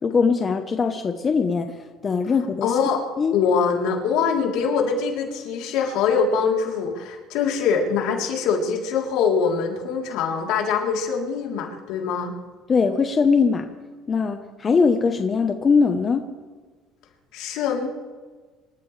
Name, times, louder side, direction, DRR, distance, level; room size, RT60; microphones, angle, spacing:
voice 1, 0.0-2.8 3.2-3.3 12.7-13.6 14.1-16.2, left 5 dB, 30° left, 6 dB, 1.0 m, -21 dB
voice 2, 2.6-3.0 3.3-12.3 17.3-17.9, left 6 dB, 75° left, 0 dB, 3.6 m, -23 dB
26.5 x 14.0 x 3.4 m, 1.4 s
cardioid pair, 135°, 0 cm